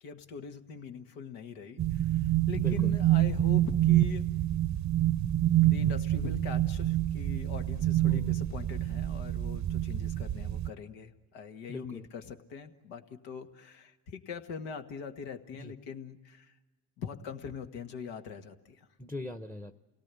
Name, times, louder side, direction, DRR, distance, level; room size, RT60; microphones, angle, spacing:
voice 1, 0.0-4.3 5.6-16.5 17.0-18.9, left 6 dB, 75° left, 6 dB, 1.8 m, -42 dB
sound 1, 1.8-10.7, right 13 dB, 40° right, 0.7 m, -27 dB
voice 2, 2.6-2.9 8.0-8.3 11.7-12.1 15.6-15.7 19.0-19.8, left 2 dB, 5° left, 9 dB, 0.9 m, -41 dB
29.5 x 18.0 x 8.4 m, 1.2 s
supercardioid pair, 75°, 42 cm